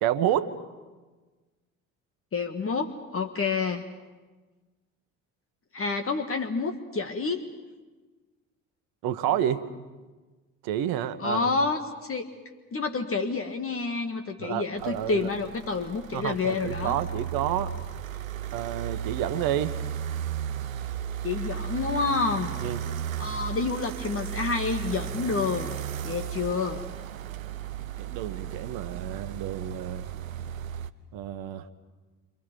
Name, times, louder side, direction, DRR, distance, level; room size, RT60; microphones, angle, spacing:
voice 1, 0.0-0.5 9.0-9.7 10.6-11.5 14.4-15.3 16.1-17.7 18.5-19.7 22.6-22.8 28.0-30.1 31.1-31.7, right 11 dB, 60° right, 11 dB, 1.4 m, -29 dB
voice 2, 2.3-3.9 5.7-7.4 11.2-12.3 12.7-17.0 21.2-22.5 23.2-25.8 26.0-26.9, left 4 dB, 35° left, 6 dB, 1.8 m, -29 dB
sound 1, 14.8-30.9, right 10 dB, 90° right, 0.7 m, -35 dB
29.5 x 26.5 x 5.4 m, 1.3 s
figure-of-eight pair, 55°, 39 cm